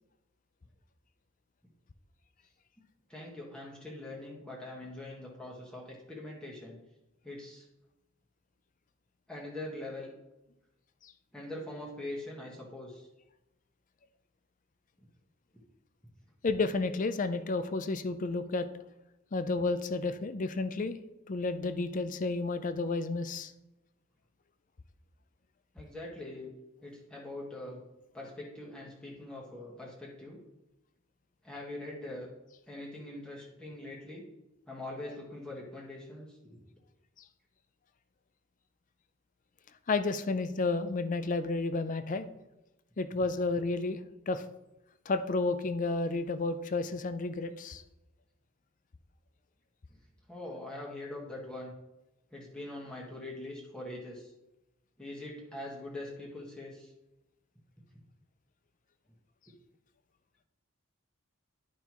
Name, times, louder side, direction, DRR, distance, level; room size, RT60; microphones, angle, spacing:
voice 1, 3.1-6.8 7.2-7.6 9.3-10.1 11.3-13.1 25.7-26.5 26.8-27.8 28.1-30.4 31.4-32.3 32.7-34.2 34.7-36.6 50.3-51.7 52.3-54.3 55.0-56.9, left 1 dB, 5° left, -4 dB, 1.4 m, -43 dB
voice 2, 16.4-18.7 19.3-21.0 21.3-23.5 39.9-42.3 43.0-44.0 44.3-44.4 45.1-47.8, left 3 dB, 40° left, 11 dB, 0.5 m, -31 dB
11.0 x 5.4 x 3.1 m, 0.95 s
head